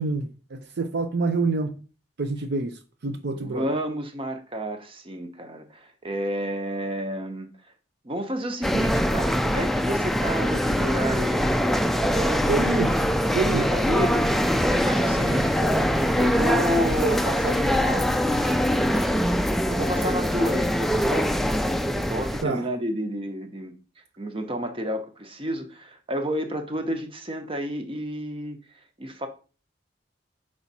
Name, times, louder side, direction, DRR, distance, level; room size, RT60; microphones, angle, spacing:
voice 1, 0.0-1.7 2.2-3.7 12.5-13.0 13.3-13.7 22.4-22.6, right 3 dB, 60° right, 0.5 m, -27 dB
voice 2, 3.3-7.5 8.0-11.4 12.0-12.5 13.6-15.8 16.2-19.2 19.7-21.4 22.1-23.7 24.2-28.6 29.0-29.3, equal, 30° right, 0.9 m, -30 dB
sound 1, 8.6-22.4, equal, ahead, 0.3 m, -23 dB
5.8 x 4.8 x 4.1 m
head